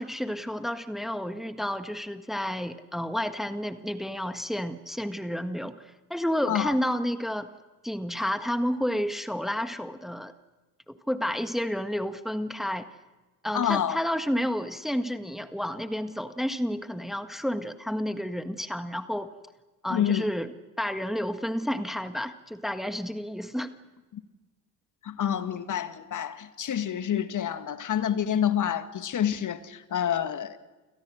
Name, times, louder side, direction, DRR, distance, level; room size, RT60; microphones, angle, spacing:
voice 1, 0.0-7.5 7.8-10.3 10.9-12.9 13.4-19.3 19.8-20.5 20.8-23.7, equal, ahead, 1.7 m, -30 dB
voice 2, 13.5-14.0 19.9-20.3 24.1-24.2 25.0-30.6, left 9 dB, 40° left, 1.9 m, -28 dB
30.0 x 28.0 x 6.5 m
figure-of-eight pair, 55°, 48 cm